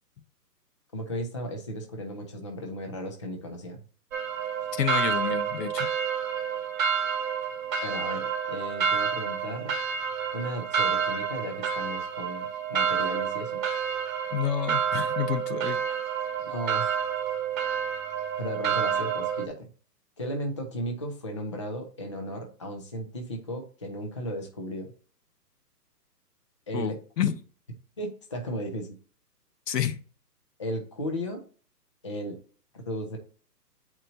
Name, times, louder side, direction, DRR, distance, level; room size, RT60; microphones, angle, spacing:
voice 1, 0.9-3.8 7.8-9.8 10.3-13.6 16.4-17.0 18.4-19.7 20.2-24.9 26.7-27.0 28.0-29.0 30.6-31.4 32.0-32.4 32.7-33.2, equal, 20° left, 3 dB, 0.5 m, -35 dB
sound 1, 4.1-19.5, right 7 dB, 55° right, 1.1 m, -29 dB
voice 2, 4.7-5.9 14.3-15.8 26.7-27.4 29.7-30.0, left 9 dB, 75° left, 11 dB, 1.0 m, -29 dB
8.7 x 4.4 x 2.7 m, 0.40 s
hypercardioid pair, 150°, 49 cm